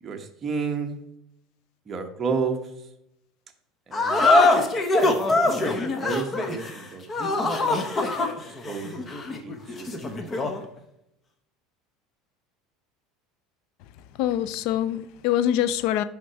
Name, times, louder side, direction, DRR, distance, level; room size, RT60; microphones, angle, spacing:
voice 1, 0.0-1.0 1.9-2.6 3.9-4.3 6.0-7.5 8.7-9.2 9.4-10.0, right 5 dB, 25° right, 1.0 m, -31 dB
sound 1, 3.9-10.6, left 2 dB, 25° left, 0.9 m, -23 dB
voice 2, 14.2-16.0, left 11 dB, 65° left, 0.4 m, -24 dB
6.2 x 5.1 x 4.6 m
supercardioid pair, 125°, 0 cm